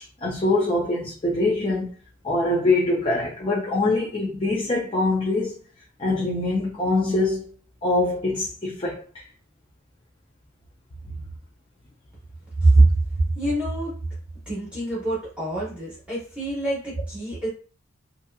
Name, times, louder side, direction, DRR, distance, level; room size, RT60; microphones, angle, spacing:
voice 1, 0.0-1.9 2.2-5.6 6.0-7.5 7.8-9.2, left 2 dB, 25° left, 0.5 m, -24 dB
voice 2, 12.6-14.0 14.5-17.5, right 2 dB, 5° right, 1.0 m, -23 dB
2.8 x 2.6 x 2.3 m
head